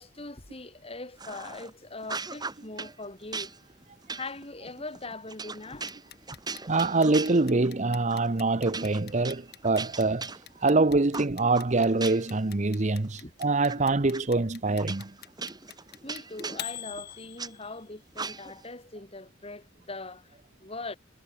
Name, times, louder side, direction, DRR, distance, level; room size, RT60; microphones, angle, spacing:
voice 1, 0.0-3.5 4.1-5.9 6.3-6.4 13.2-13.3 16.0-21.0, left 3 dB, 30° left, 3.3 m, -41 dB
sound 1, 1.2-1.7 2.0-3.0 3.3-7.8 8.1-8.3 8.6-10.7 11.1-12.4 12.8-13.8 14.1-14.2 14.8-17.5 18.1-18.7, right 4 dB, 20° right, 3.2 m, -39 dB
Clock, 5.9-17.9, left 12 dB, 55° left, 3.6 m, -43 dB
voice 2, 6.7-10.3 10.6-15.1, right 3 dB, 40° right, 0.9 m, -25 dB
head